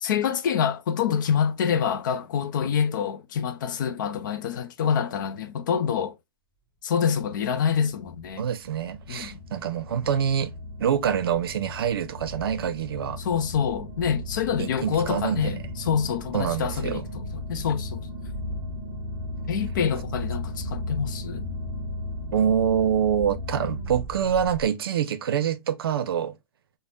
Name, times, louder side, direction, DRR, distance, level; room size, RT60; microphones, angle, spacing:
voice 1, 0.0-6.2 6.8-8.4 9.1-9.4 13.2-18.0 19.5-21.4, left 7 dB, 55° left, 0.5 m, -26 dB
sound 1, 8.1-24.7, left 1 dB, 15° right, 0.5 m, -36 dB
voice 2, 8.4-10.5 10.8-13.2 14.6-15.7 16.3-17.1 22.3-26.4, right 8 dB, 75° right, 0.5 m, -26 dB
3.3 x 2.0 x 2.5 m
hypercardioid pair, 155°, 12 cm